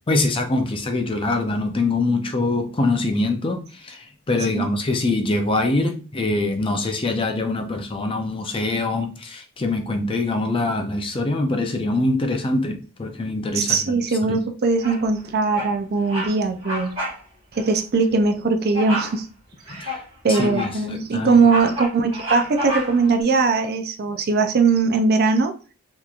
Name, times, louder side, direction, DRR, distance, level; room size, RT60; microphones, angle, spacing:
voice 1, 0.1-3.6 3.9-4.0 4.3-13.8 14.2-14.4 19.8-19.9 20.3-21.4, left 2 dB, 25° left, 4 dB, 0.5 m, -23 dB
voice 2, 13.5-17.0 17.5-19.3 20.2-25.5, right 4 dB, 50° right, 7 dB, 0.4 m, -20 dB
Bird vocalization bird call bird song, 14.8-15.2 15.5-15.8 16.1-16.3 16.6-17.2 17.5-17.7 18.7-19.2 19.7-20.8 21.2-23.1, left 1 dB, 30° right, 1.2 m, -30 dB
3.5 x 2.9 x 2.4 m, 0.36 s
head